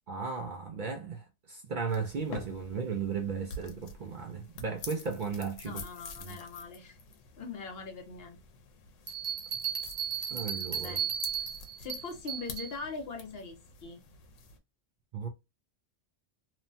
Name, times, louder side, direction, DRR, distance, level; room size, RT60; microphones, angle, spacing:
voice 1, 0.1-5.8 6.2-6.4 10.3-11.0 15.1-15.3, right 5 dB, 60° right, 0.5 m, -35 dB
sound 1, 1.9-14.6, left 4 dB, 80° left, 1.0 m, -48 dB
voice 2, 5.6-7.0 7.4-8.4 10.8-11.1 11.8-14.0, left 4 dB, 60° left, 0.9 m, -41 dB
Bell, 9.1-12.7, right 8 dB, 90° right, 1.1 m, -35 dB
3.0 x 2.1 x 2.5 m
omnidirectional pair, 1.3 m